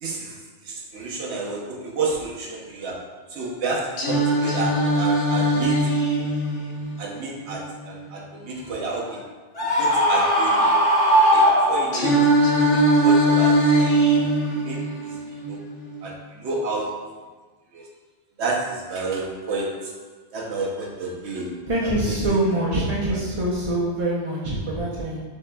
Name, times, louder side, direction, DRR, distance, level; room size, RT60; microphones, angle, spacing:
voice 1, 0.0-5.9 7.0-9.3 9.6-10.8 11.3-12.3 12.7-13.9 14.6-15.6 16.0-17.1 17.7-17.9 18.4-20.0 20.3-22.2 23.1-23.2, right 3 dB, 75° right, -1 dB, 1.1 m, -30 dB
Singing, 4.0-8.0 11.9-16.0, right 1 dB, 70° left, 1.1 m, -21 dB
Screaming, 9.6-12.2, equal, 35° left, 1.2 m, -19 dB
voice 2, 21.7-25.2, right 1 dB, 35° right, -7 dB, 0.6 m, -24 dB
6.4 x 2.9 x 2.2 m, 1.3 s
omnidirectional pair, 1.2 m